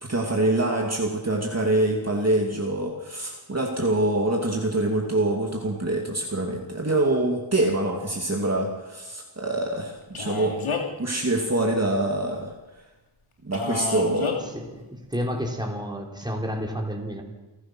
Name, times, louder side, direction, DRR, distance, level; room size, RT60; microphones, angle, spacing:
voice 1, 0.0-10.6 11.0-12.5 13.4-14.5, right 2 dB, 30° right, 0 dB, 2.5 m, -25 dB
Male speech man speaking, 10.1-11.0 13.5-14.4, left 4 dB, 85° left, 3.0 m, -29 dB
voice 2, 14.5-17.2, equal, 10° right, 1 dB, 3.5 m, -30 dB
29.5 x 15.0 x 6.3 m, 1.1 s
wide cardioid pair, 120°, 48 cm